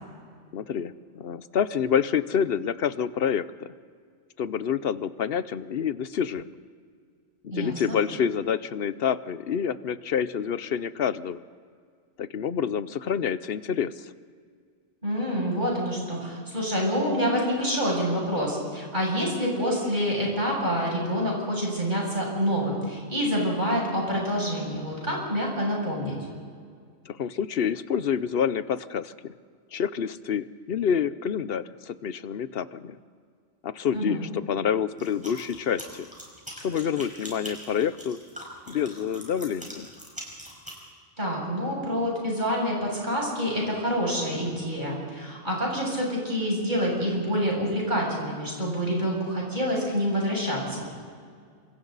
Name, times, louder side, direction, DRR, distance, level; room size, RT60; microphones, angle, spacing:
voice 1, 0.5-3.7 4.4-6.5 7.4-11.4 12.2-14.1 27.1-29.3 29.7-33.0 33.6-36.1 36.5-38.2 38.7-39.9, left 8 dB, 55° left, 15 dB, 0.9 m, -28 dB
voice 2, 7.5-8.0 15.0-26.1 33.9-34.2 41.2-50.9, equal, 40° right, -3 dB, 7.3 m, -27 dB
sound 1, 35.0-40.8, equal, 5° right, 5.4 m, -42 dB
28.0 x 25.0 x 4.1 m, 2.1 s
omnidirectional pair, 1.3 m